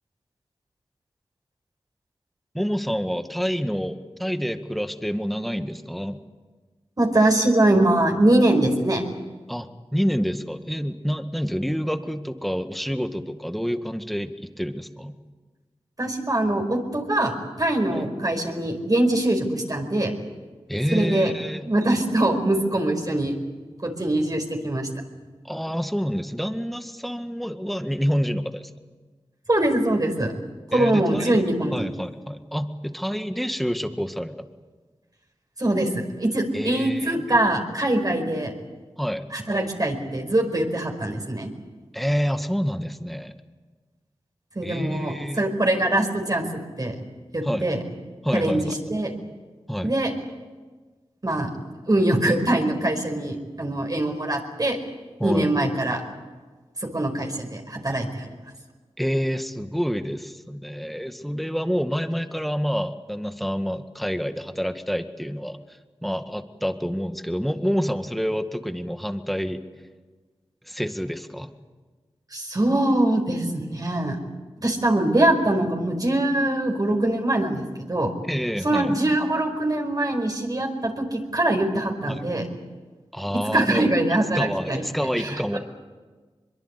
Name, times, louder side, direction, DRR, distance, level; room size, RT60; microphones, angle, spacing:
voice 1, 2.5-6.2 9.5-14.3 14.6-15.1 17.9-18.1 20.7-21.7 25.5-28.7 30.7-34.5 36.5-37.1 39.0-39.2 41.9-43.4 44.6-45.4 47.4-47.7 48.2-48.8 49.7-49.9 55.2-55.5 59.0-65.6 66.0-69.6 70.7-71.5 78.3-78.9 82.1-82.3 83.1-83.9 84.3-85.6, equal, ahead, 8 dB, 1.8 m, -28 dB
voice 2, 7.0-9.0 16.0-17.3 17.6-20.1 20.9-21.3 21.6-23.3 23.8-24.9 29.5-30.3 30.7-31.8 35.6-35.9 36.2-38.5 39.3-41.5 44.5-46.9 47.3-47.8 48.3-48.6 48.9-49.1 49.8-50.1 51.2-51.5 51.9-54.8 55.2-56.0 56.8-58.3 72.3-74.2 74.6-78.1 78.6-82.4 83.5-84.8 85.2-85.6, right 1 dB, 35° right, 3 dB, 4.9 m, -23 dB
23.0 x 22.5 x 8.4 m, 1.3 s
cardioid pair, 45°, 10 cm